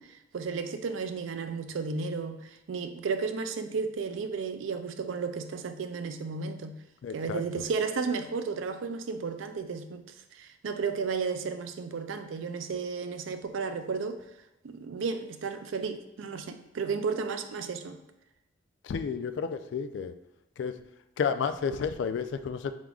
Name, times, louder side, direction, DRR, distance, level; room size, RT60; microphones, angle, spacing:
voice 1, 0.0-6.8 7.1-10.0 10.3-14.2 14.6-18.0, right 5 dB, 85° right, 8 dB, 0.4 m, -33 dB
voice 2, 7.0-7.4 18.8-20.1 20.6-20.7 21.2-22.7, left 6 dB, 65° left, 10 dB, 0.3 m, -31 dB
4.9 x 3.6 x 2.3 m, 0.99 s
head